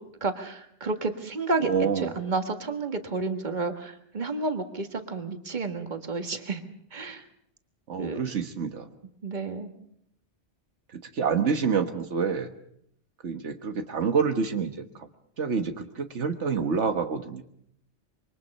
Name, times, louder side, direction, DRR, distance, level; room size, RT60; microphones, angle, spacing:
voice 1, 0.2-1.7 2.0-6.6 6.9-7.3 8.0-8.2 9.2-9.7, right 3 dB, 40° right, 6 dB, 1.8 m, -31 dB
voice 2, 1.6-2.1 7.9-8.9 11.1-12.5 13.2-15.1 15.4-17.4, right 6 dB, 85° right, 7 dB, 1.7 m, -27 dB
26.5 x 23.5 x 5.4 m, 0.70 s
omnidirectional pair, 1.2 m